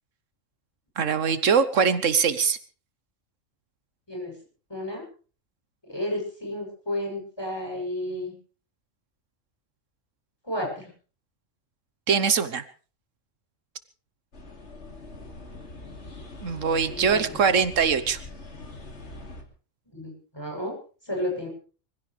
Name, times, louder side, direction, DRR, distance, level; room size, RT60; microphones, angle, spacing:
voice 1, 1.0-2.6 12.1-12.6 16.4-18.2, right 6 dB, 80° right, 12 dB, 1.4 m, -22 dB
voice 2, 4.7-5.0 5.8-8.3 10.4-10.9 16.9-17.4 19.9-20.7 21.0-21.5, left 1 dB, 20° left, 0 dB, 8.1 m, -32 dB
sound 1, 14.3-19.4, left 2 dB, 65° left, 2.9 m, -42 dB
25.0 x 16.0 x 3.3 m, 0.39 s
omnidirectional pair, 1.3 m